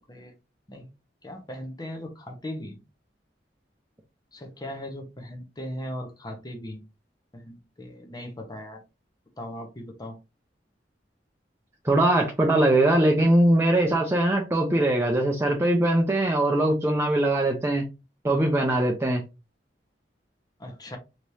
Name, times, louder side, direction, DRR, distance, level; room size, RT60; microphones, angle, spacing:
voice 1, 1.2-2.8 4.3-6.8 7.3-8.8 9.4-10.2 20.6-21.0, left 1 dB, 25° left, 0.8 m, -38 dB
voice 2, 11.8-17.9 18.2-19.2, right 1 dB, 15° right, 0.6 m, -21 dB
3.5 x 3.0 x 2.7 m
head